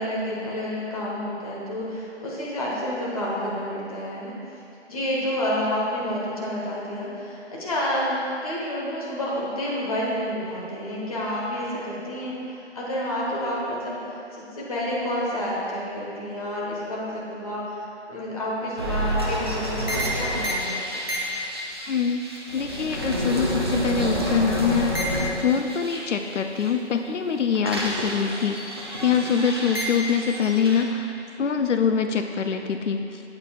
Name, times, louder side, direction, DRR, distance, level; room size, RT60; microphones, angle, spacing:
voice 1, 0.0-4.6 4.9-21.1, left 1 dB, 30° left, -5 dB, 1.4 m, -29 dB
sound 1, 18.8-26.7 27.1-30.8, equal, 20° right, 0.5 m, -28 dB
voice 2, 21.8-22.2 22.5-25.1 25.4-28.6 29.0-31.1 31.4-33.2, left 6 dB, 90° left, 6 dB, 0.5 m, -24 dB
8.6 x 8.5 x 2.4 m, 2.6 s
figure-of-eight pair, 165°, 35 cm